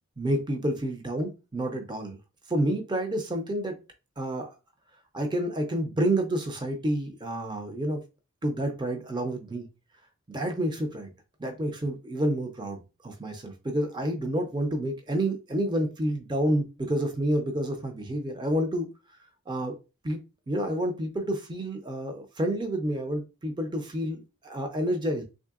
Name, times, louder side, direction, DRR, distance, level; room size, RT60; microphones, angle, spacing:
voice 1, 0.2-2.2 2.5-3.8 4.2-4.5 5.1-8.0 8.4-9.7 10.3-11.1 11.4-19.2 19.5-19.8 20.0-20.2 20.5-25.2, right 1 dB, 20° right, 0.5 m, -29 dB
3.6 x 3.3 x 2.4 m
head